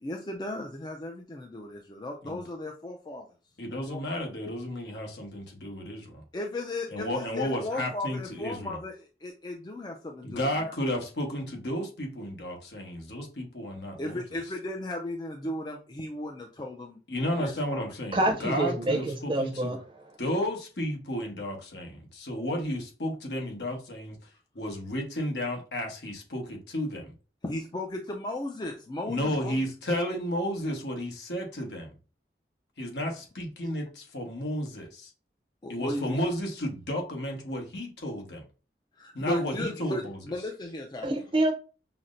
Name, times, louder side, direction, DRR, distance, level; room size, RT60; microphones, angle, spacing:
voice 1, 0.0-3.3 3.7-4.2 6.3-10.7 14.0-17.0 17.4-17.9 27.4-29.6 35.6-36.2 38.9-41.2, left 1 dB, 25° left, 0.4 m, -36 dB
voice 2, 3.6-6.2 6.9-8.8 10.2-14.2 17.1-19.7 20.2-24.1 24.5-27.1 29.1-31.9 32.8-35.1 35.7-38.4 39.1-40.2, equal, 75° left, 1.1 m, -32 dB
voice 3, 18.1-20.2 41.0-41.5, right 1 dB, 30° right, 0.6 m, -27 dB
5.7 x 2.0 x 2.5 m
head